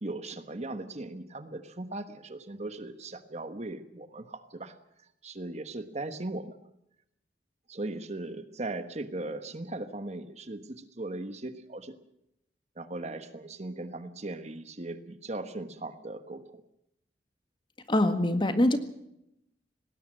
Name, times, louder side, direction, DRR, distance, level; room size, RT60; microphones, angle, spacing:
voice 1, 0.0-4.7 5.2-6.6 7.7-12.0 12.8-16.6, right 2 dB, 40° right, 10 dB, 1.3 m, -38 dB
voice 2, 17.9-18.8, left 1 dB, 25° left, 9 dB, 1.7 m, -24 dB
19.5 x 17.5 x 7.6 m, 0.81 s
head